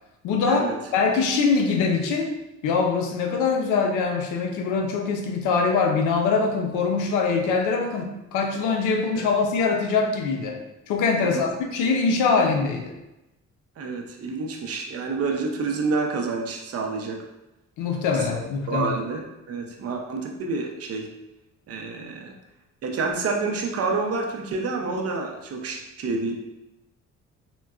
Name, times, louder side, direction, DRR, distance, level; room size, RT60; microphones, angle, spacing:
voice 1, 0.2-2.3 2.6-10.6 10.9-12.9 17.8-18.9, left 4 dB, 90° left, 3 dB, 0.5 m, -23 dB
voice 2, 13.8-17.2 18.1-18.4 18.7-21.1 21.7-22.4 22.8-26.3, right 4 dB, 55° right, 2 dB, 0.6 m, -28 dB
3.7 x 2.1 x 2.3 m, 0.96 s
cardioid pair, 90°, 30 cm